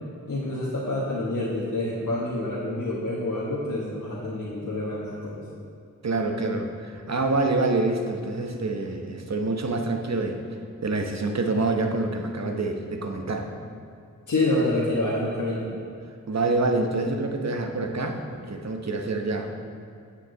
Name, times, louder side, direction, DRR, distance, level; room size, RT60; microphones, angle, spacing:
voice 1, 0.3-5.4 13.4-13.6 14.3-15.7, left 1 dB, 65° left, -6 dB, 1.4 m, -27 dB
voice 2, 6.0-10.4 10.8-13.5 15.7-15.8 16.3-19.5, right 2 dB, 55° right, 4 dB, 1.0 m, -26 dB
9.1 x 7.2 x 3.9 m, 2.4 s
cardioid pair, 45°, 33 cm